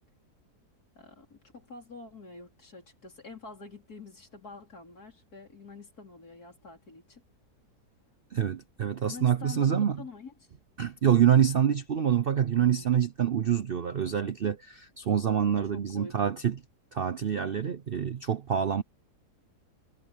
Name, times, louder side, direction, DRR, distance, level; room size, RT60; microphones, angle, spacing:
voice 1, 0.9-7.2 9.1-10.3 12.5-12.9 15.7-16.3, left 4 dB, 65° left, 4.8 m, -46 dB
voice 2, 8.3-10.0 10.8-16.5 16.9-18.8, right 8 dB, 55° right, 0.6 m, -26 dB
omnidirectional pair, 1.7 m